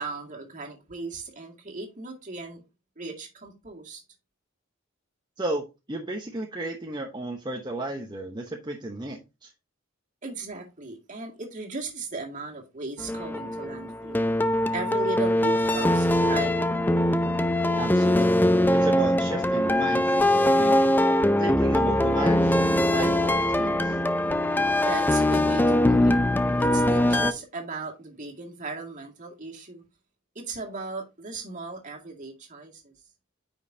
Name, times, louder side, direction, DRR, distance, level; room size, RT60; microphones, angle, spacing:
voice 1, 0.0-2.6 3.0-4.0 10.2-14.2 14.7-16.6 24.8-26.2 26.6-29.8 30.4-32.9, right 3 dB, 40° right, 2.1 m, -37 dB
voice 2, 5.4-9.5 17.8-20.8 21.4-24.0, right 2 dB, 20° right, 0.9 m, -34 dB
sound 1, 13.0-27.3, left 1 dB, 10° left, 0.5 m, -22 dB
9.3 x 5.3 x 2.7 m
head